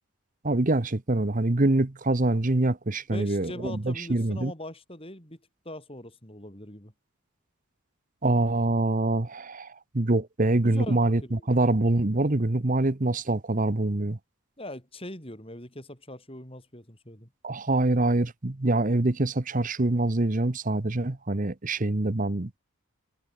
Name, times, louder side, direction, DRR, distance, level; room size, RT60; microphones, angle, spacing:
voice 1, 0.4-4.5 8.2-14.2 17.4-22.6, right 2 dB, 35° right, 1.0 m, -25 dB
voice 2, 3.1-5.4 5.7-6.9 10.6-11.5 14.6-17.3, left 1 dB, 25° left, 7.1 m, -41 dB
head